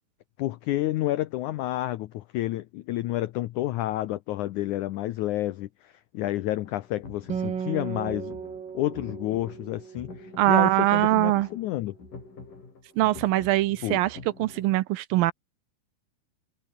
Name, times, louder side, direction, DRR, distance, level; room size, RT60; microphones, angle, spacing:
voice 1, 0.4-8.4 8.7-11.9 13.8-14.0, left 15 dB, 85° left, 1.7 m, -30 dB
sound 1, 6.7-14.8, left 4 dB, 55° left, 8.1 m, -46 dB
Acoustic guitar, 7.3-11.0, right 7 dB, 45° right, 1.6 m, -36 dB
voice 2, 10.4-11.5 13.0-15.3, right 16 dB, 80° right, 2.3 m, -22 dB
omnidirectional pair, 4.5 m